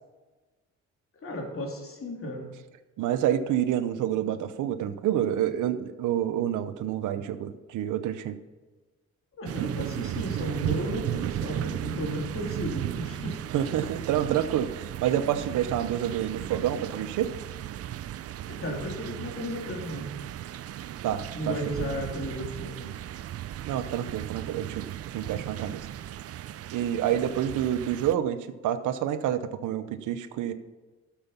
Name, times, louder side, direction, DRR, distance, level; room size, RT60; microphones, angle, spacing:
voice 1, 1.2-2.5 9.4-13.4 18.4-20.2 21.3-23.0, equal, 45° left, -1 dB, 3.3 m, -34 dB
voice 2, 3.0-8.4 13.5-17.3 21.0-21.5 23.7-24.8 25.1-25.9 26.7-30.5, right 10 dB, 85° right, 11 dB, 0.8 m, -28 dB
sound 1, 9.4-28.1, right 12 dB, 55° right, 0.5 m, -36 dB
12.0 x 7.2 x 5.7 m, 1.2 s
cardioid pair, 90°, 30 cm